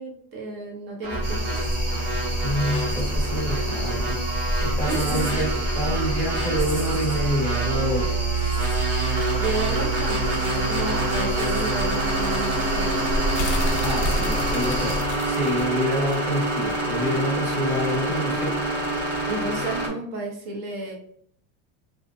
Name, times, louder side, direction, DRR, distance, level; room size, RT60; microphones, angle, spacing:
voice 1, 0.0-1.6 4.9-5.4 9.1-13.1 19.3-20.9, right 2 dB, 30° right, -1 dB, 0.6 m, -32 dB
sound 1, 1.0-19.9, right 1 dB, 90° right, 1.3 m, -28 dB
sound 2, 1.1-16.8 17.1-17.2, right 4 dB, 45° left, 0.5 m, -30 dB
sound 3, 1.2-15.0, equal, 60° right, 1.3 m, -30 dB
voice 2, 2.0-8.1 13.5-18.6 18.9-19.2, equal, 5° right, -6 dB, 1.0 m, -28 dB
2.6 x 2.1 x 2.4 m, 0.63 s
cardioid pair, 175°, 34 cm